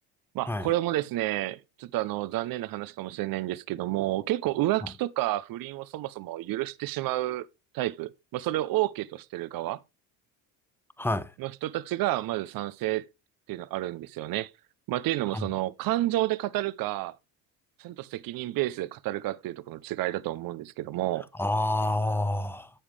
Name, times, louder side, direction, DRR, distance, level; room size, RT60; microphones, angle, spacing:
voice 1, 0.3-7.5 7.7-9.8 11.4-13.0 13.5-14.5 14.9-17.2 17.8-21.3, right 16 dB, 55° right, 0.7 m, -30 dB
voice 2, 11.0-11.3 15.3-15.5 21.4-22.7, left 1 dB, 5° left, 0.8 m, -28 dB
9.9 x 7.2 x 3.3 m
supercardioid pair, 85°, 43 cm